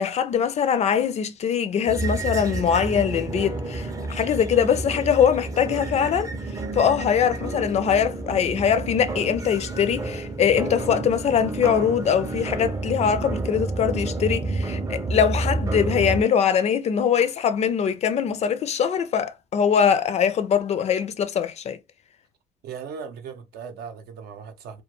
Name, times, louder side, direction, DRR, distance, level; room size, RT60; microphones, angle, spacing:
voice 1, 0.0-6.3 6.7-21.8, left 8 dB, 40° left, 0.4 m, -22 dB
sound 1, 1.9-16.2, right 2 dB, 20° right, 0.4 m, -30 dB
voice 2, 22.6-24.8, right 6 dB, 75° right, 0.6 m, -38 dB
2.2 x 2.2 x 2.8 m
cardioid pair, 110°, 17 cm